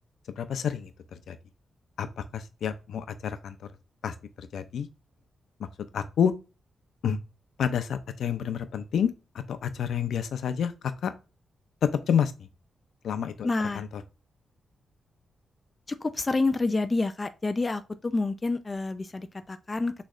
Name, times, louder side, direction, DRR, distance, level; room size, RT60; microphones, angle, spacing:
voice 1, 0.3-1.4 2.0-3.7 4.0-4.9 5.6-5.7 5.9-6.3 7.0-7.2 7.6-9.1 9.3-11.1 11.8-12.5 13.0-13.5 13.7-14.0, left 8 dB, 80° left, 0.5 m, -29 dB
voice 2, 13.4-13.8 16.0-19.9, left 3 dB, 20° left, 0.3 m, -28 dB
6.3 x 3.2 x 2.4 m
wide cardioid pair, 160°, 0 cm